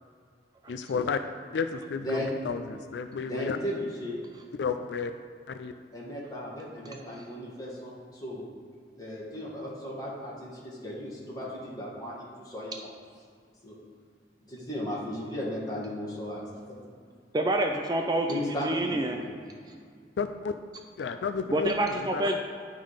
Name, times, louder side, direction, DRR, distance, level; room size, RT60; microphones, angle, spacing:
voice 1, 0.7-1.2 1.5-3.6 4.6-5.1 5.5-5.7 20.2-20.5 21.0-22.3, left 5 dB, 80° left, 8 dB, 0.4 m, -32 dB
voice 2, 3.2-4.2 5.9-8.5 9.0-12.7 13.6-13.8 14.5-16.8 18.3-19.3, equal, 20° left, -6 dB, 1.8 m, -36 dB
voice 3, 17.3-18.3 18.6-19.2 21.5-22.4, right 1 dB, 20° right, 3 dB, 0.4 m, -27 dB
10.5 x 3.7 x 5.0 m, 2.1 s
head